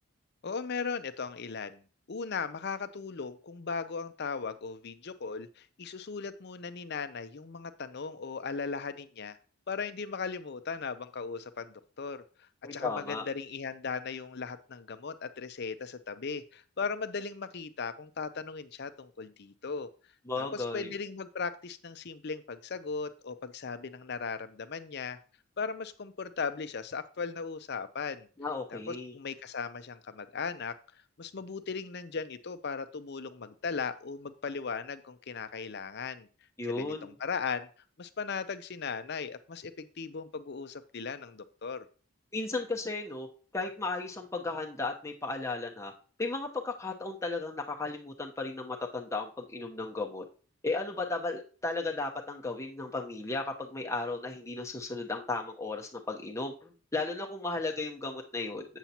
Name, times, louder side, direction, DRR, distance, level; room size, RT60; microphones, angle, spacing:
voice 1, 0.4-9.4 9.7-19.9 20.4-25.2 25.6-28.3 28.7-30.7 31.2-36.3 36.8-37.7 38.0-41.9, left 5 dB, 50° left, 11 dB, 0.5 m, -37 dB
voice 2, 12.6-13.2 20.3-20.9 28.4-29.1 36.6-37.1 42.3-43.3 43.5-45.9 46.2-50.2 50.6-58.7, left 3 dB, 15° left, 1 dB, 0.9 m, -35 dB
8.1 x 7.3 x 2.9 m, 0.39 s
head